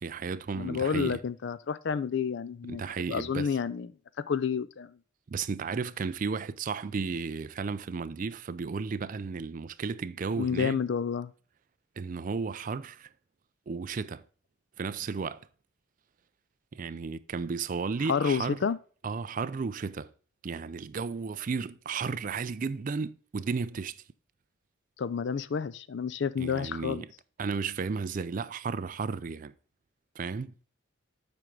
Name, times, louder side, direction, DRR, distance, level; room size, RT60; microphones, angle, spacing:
voice 1, 0.0-1.2 2.7-3.6 5.3-10.8 12.0-13.1 13.7-14.2 14.8-15.5 16.7-18.6 19.0-20.1 20.4-24.0 26.4-27.1 27.4-29.5 30.2-30.5, right 5 dB, 40° right, 0.4 m, -34 dB
voice 2, 0.6-2.8 3.1-3.9 4.3-5.0 10.4-11.3 18.1-18.8 25.0-27.1, left 6 dB, 55° left, 0.4 m, -30 dB
7.8 x 4.5 x 3.7 m
head